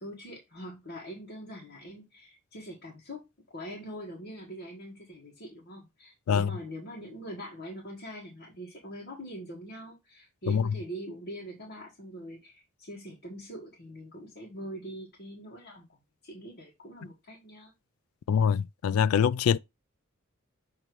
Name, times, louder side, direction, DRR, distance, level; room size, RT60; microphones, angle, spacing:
voice 1, 0.0-16.0 16.2-17.7, equal, 50° left, 1.6 m, -43 dB
voice 2, 18.3-19.6, left 7 dB, 80° left, 0.3 m, -24 dB
6.9 x 3.1 x 4.6 m
head